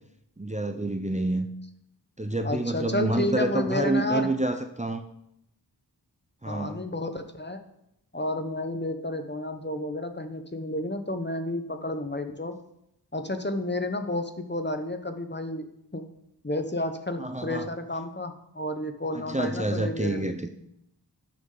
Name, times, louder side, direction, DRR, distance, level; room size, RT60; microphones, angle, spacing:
voice 1, 0.4-1.5 2.2-5.0 6.4-6.8 17.2-17.7 19.1-20.5, right 2 dB, 20° right, 6 dB, 0.6 m, -28 dB
voice 2, 2.4-4.3 6.5-7.6 8.1-12.6 13.1-15.7 15.9-16.0 16.4-20.3, left 1 dB, 25° left, 7 dB, 0.9 m, -31 dB
12.0 x 6.5 x 3.9 m, 0.80 s
wide cardioid pair, 40°, 40 cm